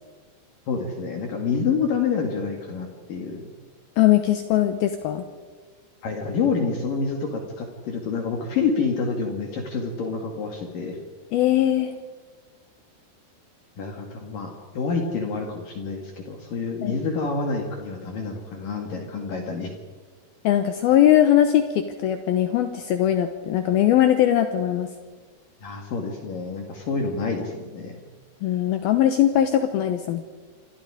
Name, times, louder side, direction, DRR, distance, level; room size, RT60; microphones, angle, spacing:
voice 1, 0.7-3.4 6.0-11.0 13.8-19.7 25.6-28.0, left 5 dB, 55° left, 2 dB, 3.5 m, -28 dB
voice 2, 4.0-5.3 11.3-11.9 16.8-17.0 20.4-24.9 28.4-30.2, left 11 dB, 75° left, 7 dB, 2.6 m, -20 dB
28.0 x 26.0 x 5.0 m, 1.4 s
omnidirectional pair, 4.9 m